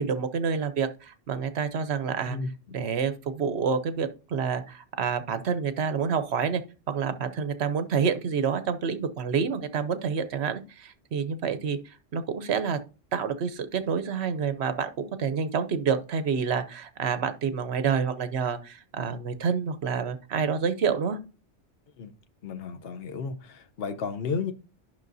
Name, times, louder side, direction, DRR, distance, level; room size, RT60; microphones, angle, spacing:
voice 1, 0.0-2.4 2.7-6.6 6.9-11.8 12.1-12.8 13.1-14.9 15.2-21.2, right 6 dB, 65° right, 1.0 m, -28 dB
voice 2, 2.2-2.8 22.0-22.1 22.4-24.5, left 5 dB, 60° left, 1.0 m, -33 dB
10.5 x 5.8 x 2.6 m
omnidirectional pair, 1.2 m